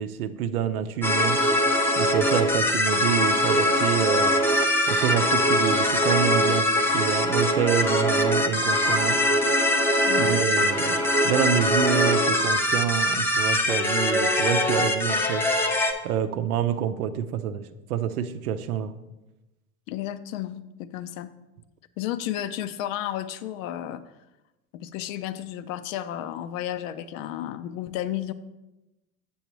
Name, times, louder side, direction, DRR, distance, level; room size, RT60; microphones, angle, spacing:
voice 1, 0.0-1.4 2.0-4.4 4.9-9.2 10.2-15.4 16.0-18.9, right 9 dB, 80° right, 11 dB, 0.7 m, -27 dB
sound 1, 1.0-15.9, left 1 dB, 5° left, 0.3 m, -22 dB
voice 2, 10.1-10.4 19.9-21.3 22.0-24.0 24.8-28.3, left 12 dB, 60° left, 13 dB, 0.6 m, -32 dB
7.0 x 7.0 x 3.0 m, 1.0 s
hypercardioid pair, 90°, 44 cm